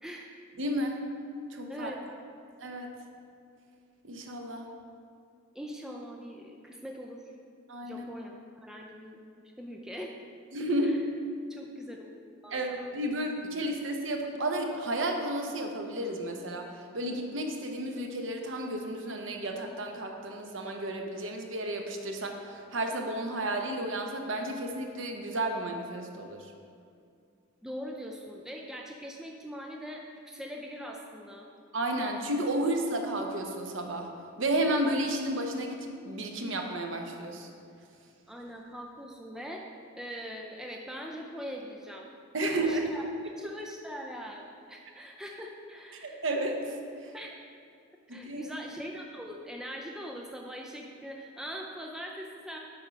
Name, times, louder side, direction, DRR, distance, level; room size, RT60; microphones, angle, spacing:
voice 1, 0.0-0.3 1.7-2.0 5.5-7.3 7.8-9.2 9.6-10.2 10.8-11.0 11.5-12.1 12.4-12.9 27.6-31.5 38.3-39.6 40.0-42.1 42.5-43.0 43.4-46.2 47.1-47.3 48.1-52.6, equal, 5° right, 0 dB, 0.4 m, -42 dB
voice 2, 0.6-1.0 1.5-1.9 2.6-2.9 4.0-4.7 7.7-8.1 10.5-10.9 12.5-26.5 31.7-34.1 34.4-37.5 42.3-42.9 43.3-43.4 46.0-47.1 48.1-48.4, right 1 dB, 60° right, 3 dB, 0.8 m, -32 dB
8.5 x 4.5 x 5.1 m, 2.4 s
head